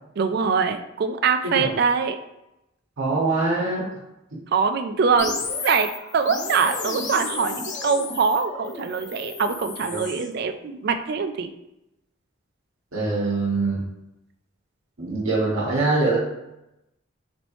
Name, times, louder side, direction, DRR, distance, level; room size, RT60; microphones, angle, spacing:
voice 1, 0.2-2.2 4.5-5.3 5.6-5.9 6.1-11.5, right 5 dB, 50° right, 8 dB, 0.3 m, -23 dB
voice 2, 1.4-1.7 3.0-3.8 9.9-10.0 12.9-13.8 15.0-16.2, right 3 dB, 85° right, -5 dB, 1.2 m, -23 dB
sound 1, 5.2-10.3, left 4 dB, 35° left, 0.4 m, -33 dB
4.0 x 3.1 x 3.0 m, 0.89 s
head